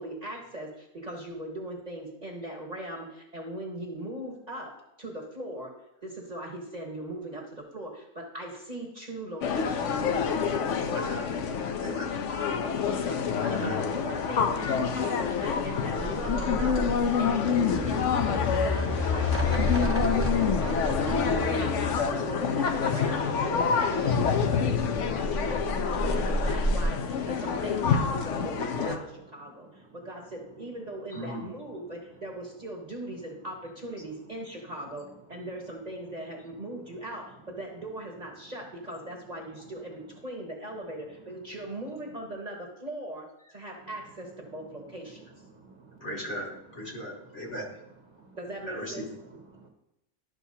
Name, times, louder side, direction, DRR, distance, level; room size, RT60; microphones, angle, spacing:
voice 1, 0.0-5.7 6.0-10.0 13.6-21.8 22.1-45.3 48.4-49.1, right 1 dB, 30° right, -1 dB, 1.2 m, -39 dB
sound 1, 9.4-29.0, left 6 dB, 65° left, 1.0 m, -27 dB
voice 2, 10.9-11.4 11.8-12.1 13.4-13.8 31.1-31.5 46.0-47.7 48.7-49.1, equal, 50° left, -3 dB, 2.1 m, -37 dB
sound 2, 15.6-22.1 24.7-26.8, left 1 dB, 10° right, 0.8 m, -30 dB
voice 3, 29.3-30.0 30.3-30.4 35.3-35.4 36.7-37.0 38.4-38.5 39.5-39.6 41.2-41.3 43.8-44.2 44.5-46.1 46.9-47.5 48.1-48.4 49.2-49.7, right 4 dB, 55° right, 2 dB, 1.4 m, -55 dB
12.0 x 5.7 x 2.7 m, 0.88 s
omnidirectional pair, 1.4 m